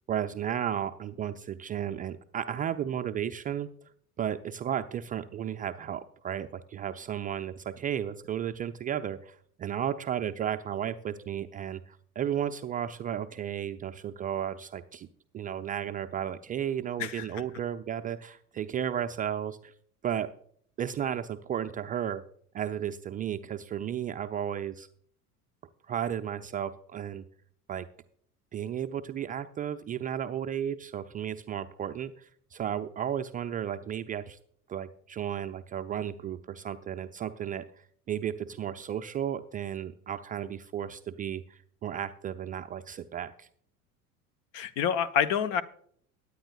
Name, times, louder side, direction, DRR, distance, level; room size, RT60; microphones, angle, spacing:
voice 1, 0.1-3.7 4.2-15.1 15.3-19.7 20.0-20.3 20.8-22.2 22.5-24.9 25.9-27.2 27.7-27.9 28.5-34.4 34.7-43.5, right 9 dB, 20° right, 7 dB, 0.4 m, -34 dB
voice 2, 44.5-45.6, left 8 dB, 55° left, 14 dB, 0.9 m, -27 dB
22.0 x 9.6 x 2.3 m, 0.63 s
figure-of-eight pair, 70°, 46 cm